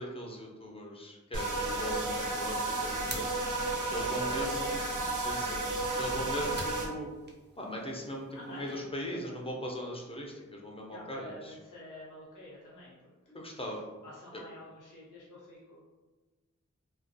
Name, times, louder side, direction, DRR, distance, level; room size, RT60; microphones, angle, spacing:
voice 1, 0.0-3.5 3.9-4.8 5.2-5.6 6.0-7.1 7.6-11.6 13.3-13.8 14.3-14.4, equal, 20° left, -1 dB, 0.5 m, -39 dB
sound 1, 1.3-6.9, right 2 dB, 90° right, 0.5 m, -32 dB
sound 2, 2.4-8.8, right 2 dB, 35° right, 0.5 m, -49 dB
voice 2, 4.2-4.5 5.0-5.2 8.3-8.8 9.1-9.2 10.9-12.9 14.0-15.8, left 1 dB, 85° left, -7 dB, 0.9 m, -48 dB
2.3 x 2.2 x 2.6 m, 1.3 s
cardioid pair, 40°, 30 cm